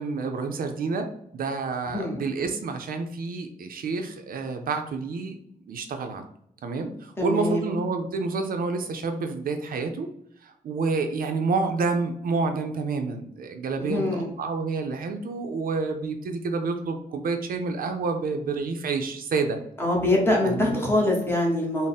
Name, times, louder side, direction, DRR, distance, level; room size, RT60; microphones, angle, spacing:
voice 1, 0.0-5.4 5.7-6.3 6.6-10.1 10.4-19.6 20.4-20.8, right 4 dB, 70° right, 6 dB, 0.4 m, -29 dB
voice 2, 1.8-2.2 7.2-7.7 13.8-14.3 19.8-21.9, left 1 dB, 15° left, -1 dB, 0.8 m, -24 dB
3.6 x 2.0 x 4.0 m, 0.71 s
wide cardioid pair, 175°, 15 cm